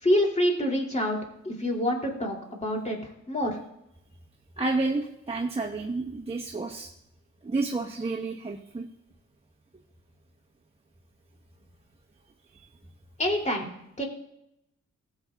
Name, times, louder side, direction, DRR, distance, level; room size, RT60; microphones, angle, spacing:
voice 1, 0.0-1.2 1.4-3.0 3.3-3.6 13.2-13.7 14.0-14.1, left 1 dB, 25° left, 1 dB, 3.0 m, -26 dB
voice 2, 4.6-6.9 7.4-8.9, right 3 dB, 20° right, -2 dB, 1.1 m, -30 dB
15.0 x 8.1 x 2.4 m, 0.80 s
cardioid pair, 70°, 30 cm